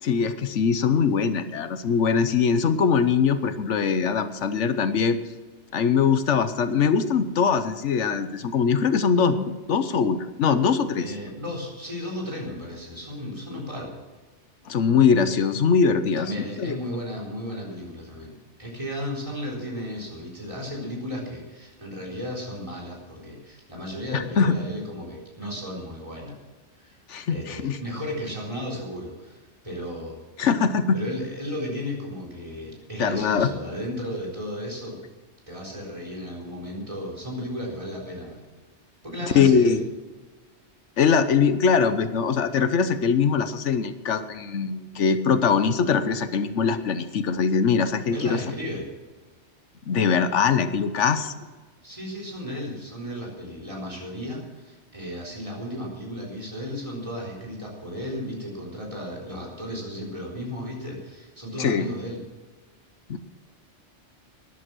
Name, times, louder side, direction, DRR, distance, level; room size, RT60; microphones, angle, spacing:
voice 1, 0.0-5.2 5.7-11.1 14.7-16.3 16.6-16.8 24.1-24.5 27.1-27.8 30.4-31.0 33.0-33.5 39.3-39.8 41.0-48.4 49.9-51.3 61.6-61.9 63.1-63.2, left 6 dB, 85° left, 11 dB, 1.2 m, -22 dB
voice 2, 11.0-13.9 16.2-26.4 26.8-27.0 27.3-30.2 30.9-35.0 35.5-38.4 39.0-39.8 48.1-48.9 51.8-62.2, equal, 25° right, -1 dB, 4.2 m, -34 dB
14.0 x 11.0 x 6.2 m, 1.3 s
omnidirectional pair, 1.2 m